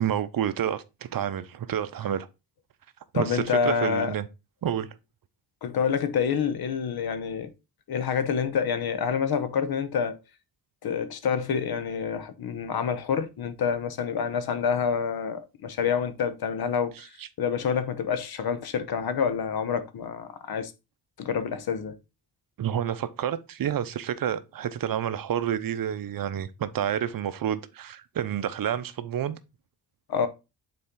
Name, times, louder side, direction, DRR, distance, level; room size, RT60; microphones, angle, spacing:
voice 1, 0.0-2.3 3.1-4.3 4.6-4.9 17.0-17.3 22.6-29.4, right 9 dB, 55° right, 0.7 m, -29 dB
voice 2, 3.1-4.1 5.6-7.5 7.9-10.2 10.8-17.1 17.4-20.7 21.2-21.9 30.1-30.3, left 6 dB, 65° left, 0.9 m, -27 dB
6.7 x 4.3 x 3.7 m
cardioid pair, 110°, 41 cm